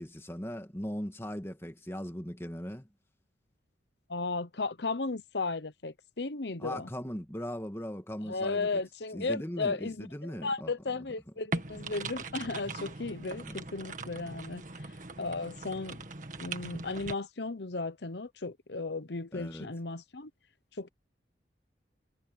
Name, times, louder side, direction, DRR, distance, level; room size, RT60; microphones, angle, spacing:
voice 1, 0.0-2.9 6.6-8.8 9.1-10.7 13.4-13.5 19.3-19.7, equal, 15° left, 2.0 m, -39 dB
voice 2, 4.1-6.9 8.2-14.9 15.2-16.0 16.4-20.3 20.8-20.9, left 3 dB, 65° left, 1.0 m, -35 dB
sound 1, 11.5-17.1, right 3 dB, 45° right, 1.9 m, -40 dB
head